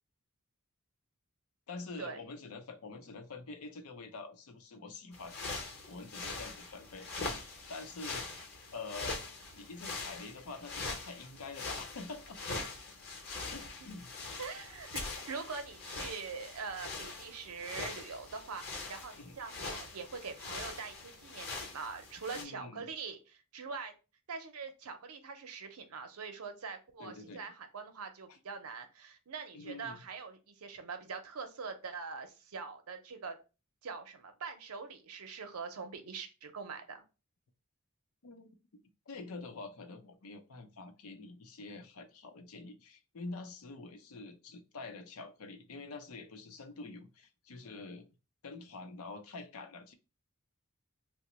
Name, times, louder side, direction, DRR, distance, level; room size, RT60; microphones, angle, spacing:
voice 1, 1.7-5.5 5.9-7.4 7.7-8.3 8.7-9.2 9.5-12.4 13.5-14.1 19.2-19.4 22.3-22.9 27.0-27.4 29.5-30.0 38.2-48.1 48.4-49.9, left 3 dB, 80° left, 0.6 m, -46 dB
sound 1, 5.1-22.4, left 3 dB, 45° left, 0.8 m, -43 dB
voice 2, 14.4-23.9 24.3-33.4 33.8-37.0, right 5 dB, 90° right, 0.6 m, -43 dB
2.9 x 2.1 x 4.1 m
head